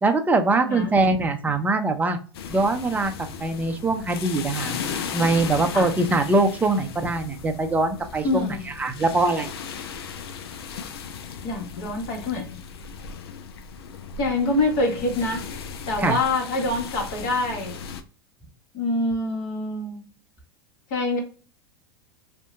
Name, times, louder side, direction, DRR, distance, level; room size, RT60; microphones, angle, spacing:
voice 1, 0.0-2.2 2.5-3.1 3.4-9.5 16.0-16.2, right 2 dB, 10° right, 5 dB, 0.5 m, -23 dB
voice 2, 0.5-0.9 5.7-5.9 8.2-8.6 11.4-12.6 14.2-15.4 15.9-17.7 18.7-20.0 20.9-21.2, left 2 dB, 60° left, 1 dB, 1.2 m, -25 dB
sound 1, 2.3-18.0, left 6 dB, 80° left, 0.4 m, -36 dB
2.7 x 2.1 x 2.3 m, 0.38 s
hypercardioid pair, 100°, 13 cm